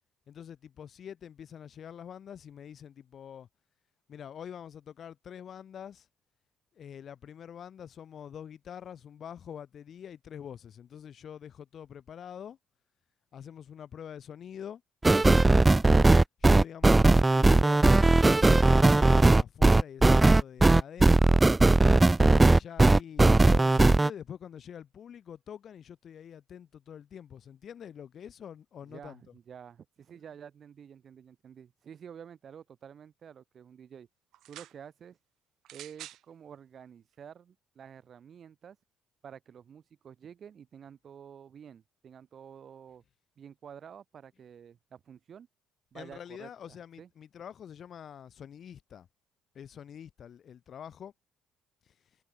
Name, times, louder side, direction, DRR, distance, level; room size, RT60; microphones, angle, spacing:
voice 1, 0.3-3.5 4.1-6.1 6.7-12.6 13.3-14.8 16.4-21.4 22.2-29.3 45.9-49.1 49.5-51.1 51.9-52.0, left 8 dB, 55° left, 5.2 m, -45 dB
sound 1, 15.0-24.1, right 2 dB, 15° right, 0.3 m, -19 dB
voice 2, 28.8-34.1 34.5-35.2 35.7-38.8 39.2-43.0 43.4-45.5 45.9-47.1, right 8 dB, 50° right, 5.7 m, -50 dB
sound 2, 34.3-34.8 35.6-36.2 37.1-37.2, right 14 dB, 70° right, 6.9 m, -47 dB
supercardioid pair, 85°, 0 cm